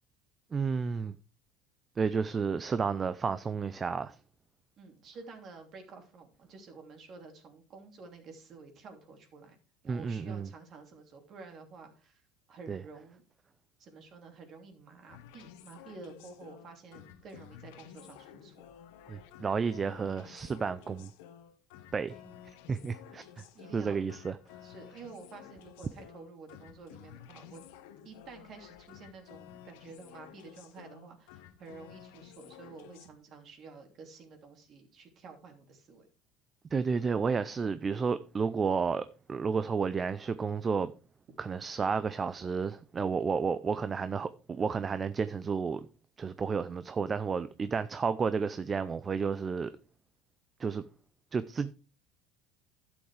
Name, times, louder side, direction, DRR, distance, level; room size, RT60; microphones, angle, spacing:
voice 1, 0.5-1.2 2.0-4.2 9.9-10.5 12.7-12.8 19.1-21.1 21.9-22.2 22.7-23.3 23.7-24.4 36.7-40.9 41.4-45.9 46.2-49.7 50.6-50.8 51.3-51.7, right 5 dB, 20° right, 0.5 m, -31 dB
voice 2, 4.8-9.6 9.8-12.2 12.5-13.2 13.8-18.7 22.2-22.4 23.5-24.1 24.6-27.6 28.0-36.1, right 4 dB, 40° right, 3.0 m, -50 dB
sound 1, 15.1-33.1, left 10 dB, 85° left, 1.3 m, -53 dB
12.0 x 7.9 x 3.3 m
cardioid pair, 135°, 0 cm